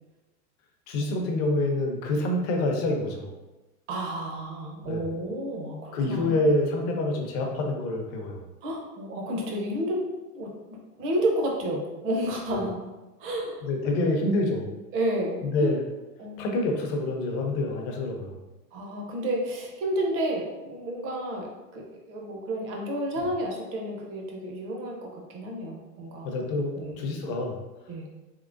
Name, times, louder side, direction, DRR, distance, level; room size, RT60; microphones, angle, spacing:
voice 1, 0.9-3.3 4.8-5.0 5.9-8.4 12.5-12.6 13.6-14.7 15.4-15.8 16.4-18.4 26.2-27.6, left 2 dB, 40° left, 2 dB, 0.6 m, -27 dB
voice 2, 3.9-6.4 8.6-10.0 10.3-12.8 13.2-13.9 14.9-15.8 16.2-16.7 18.7-26.3 26.7-27.0 27.9-28.1, right 1 dB, 30° right, 0 dB, 0.7 m, -31 dB
3.7 x 3.0 x 2.5 m, 1.1 s
hypercardioid pair, 130°, 46 cm